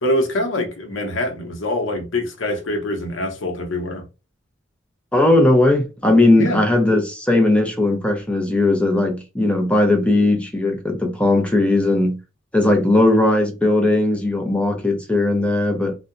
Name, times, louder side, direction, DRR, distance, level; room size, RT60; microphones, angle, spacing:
voice 1, 0.0-4.0 6.4-6.6, left 1 dB, 75° left, 0.7 m, -24 dB
voice 2, 5.1-12.2 12.5-16.0, left 2 dB, 5° left, 0.5 m, -18 dB
2.6 x 2.1 x 2.5 m
head